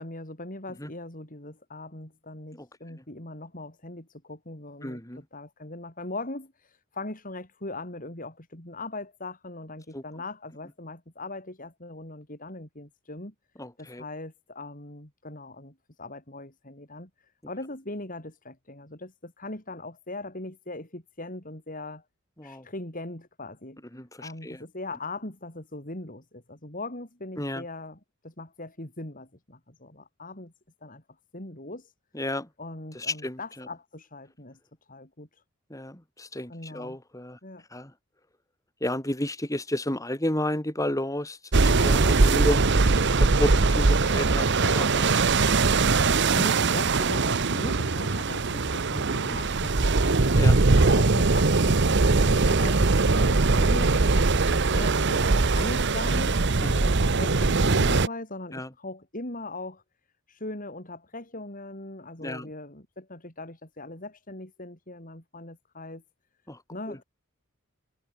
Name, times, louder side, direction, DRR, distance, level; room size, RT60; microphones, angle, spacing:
voice 1, 0.0-13.3 13.8-22.0 22.4-23.8 24.2-30.5 30.8-31.0 31.3-31.9 32.6-34.6 34.9-35.4 36.5-37.0 37.4-37.6 46.0-54.3 54.7-59.8 60.3-66.0 66.7-67.0, left 2 dB, 40° left, 4.7 m, -40 dB
voice 2, 4.8-5.2 9.9-10.0 13.6-14.0 22.4-22.6 23.9-24.6 27.4-27.6 32.1-32.5 32.9-33.4 35.7-37.4 37.7-37.9 38.8-42.9 43.2-45.1 50.4-50.6 54.5-54.6 56.6-56.7 58.5-58.7 62.2-62.5 66.5-66.6 66.9-67.0, left 1 dB, 15° left, 3.0 m, -32 dB
sound 1, 41.5-58.1, right 3 dB, 55° right, 1.0 m, -21 dB
head